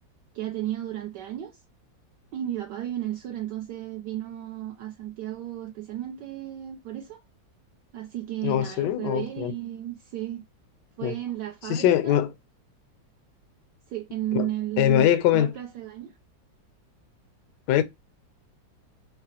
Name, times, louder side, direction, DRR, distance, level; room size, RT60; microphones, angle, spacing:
voice 1, 0.3-1.6 2.3-7.2 7.9-10.4 11.0-12.2 13.9-16.1, right 13 dB, 70° right, 1.1 m, -33 dB
voice 2, 8.4-9.5 11.0-11.2 11.7-12.3 14.3-14.5 14.8-15.5 17.7-17.8, left 11 dB, 75° left, 1.1 m, -22 dB
4.9 x 2.1 x 2.8 m
omnidirectional pair, 2.1 m